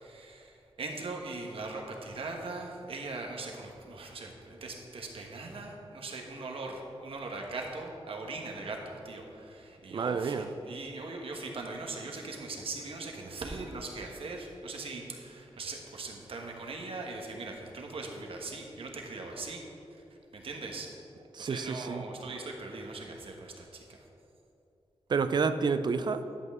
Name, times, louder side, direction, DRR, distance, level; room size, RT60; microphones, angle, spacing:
voice 1, 0.0-19.6 19.9-20.0 20.3-20.9 21.4-24.0, right 3 dB, 65° right, 1 dB, 1.2 m, -40 dB
voice 2, 9.9-10.5 21.3-22.0 25.1-26.3, right 5 dB, 45° right, 10 dB, 0.4 m, -29 dB
11.0 x 7.9 x 3.6 m, 2.8 s
wide cardioid pair, 150°, 10 cm